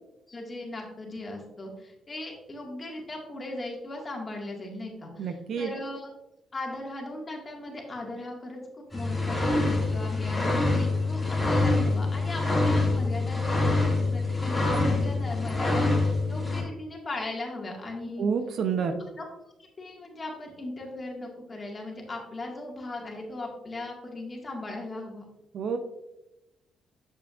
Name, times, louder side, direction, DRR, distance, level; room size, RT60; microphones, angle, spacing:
voice 1, 0.3-6.1 6.5-18.3 19.2-19.3 19.8-25.2, left 2 dB, 30° left, 0 dB, 1.9 m, -38 dB
voice 2, 5.2-5.7 18.2-19.0 25.5-25.8, right 6 dB, 65° right, 7 dB, 0.7 m, -28 dB
sound 1, 8.9-16.6, left 2 dB, 15° left, 2.2 m, -25 dB
7.4 x 6.7 x 2.5 m, 0.93 s
cardioid pair, 90°, 0 cm